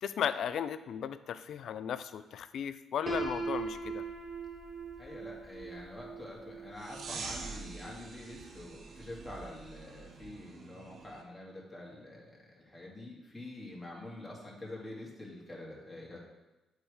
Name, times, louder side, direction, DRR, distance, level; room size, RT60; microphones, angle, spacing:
voice 1, 0.0-4.0, left 8 dB, 70° left, 13 dB, 0.3 m, -36 dB
Piano, 3.1-8.9, right 4 dB, 20° right, 0.8 m, -41 dB
voice 2, 5.0-16.2, left 1 dB, 10° left, -4 dB, 2.0 m, -46 dB
sound 1, 6.8-11.2, right 4 dB, 55° right, 0.7 m, -46 dB
7.5 x 3.3 x 4.8 m, 1.1 s
cardioid pair, 90°, 0 cm